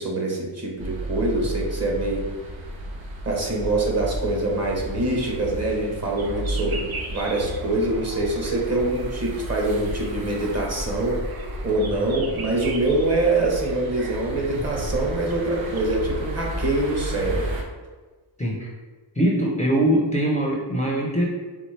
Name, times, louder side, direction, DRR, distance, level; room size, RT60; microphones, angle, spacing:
voice 1, 0.0-2.3 3.2-6.8 7.1-11.2 11.6-17.5, right 2 dB, 35° right, -2 dB, 1.1 m, -24 dB
sound 1, 0.8-17.6, right 1 dB, 85° right, 0.8 m, -33 dB
sound 2, 6.2-15.9, right 3 dB, 55° right, 0.6 m, -40 dB
voice 2, 18.4-18.7 19.1-21.3, right 1 dB, 15° left, -3 dB, 0.5 m, -22 dB
4.3 x 3.5 x 3.2 m, 1.3 s
wide cardioid pair, 120°, 46 cm